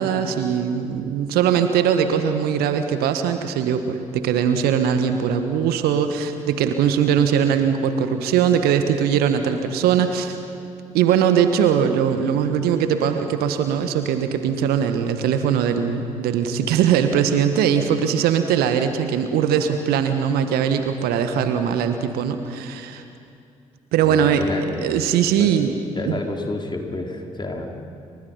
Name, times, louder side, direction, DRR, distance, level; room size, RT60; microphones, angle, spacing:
voice 1, 0.0-10.4 10.9-23.0 23.9-24.4 24.8-25.7 26.0-26.2, right 8 dB, 65° right, 8 dB, 1.5 m, -20 dB
voice 2, 24.0-25.0 25.4-25.5 25.9-27.7, left 2 dB, 25° left, 2 dB, 4.2 m, -30 dB
30.0 x 25.5 x 5.5 m, 2.5 s
figure-of-eight pair, 40°, 17 cm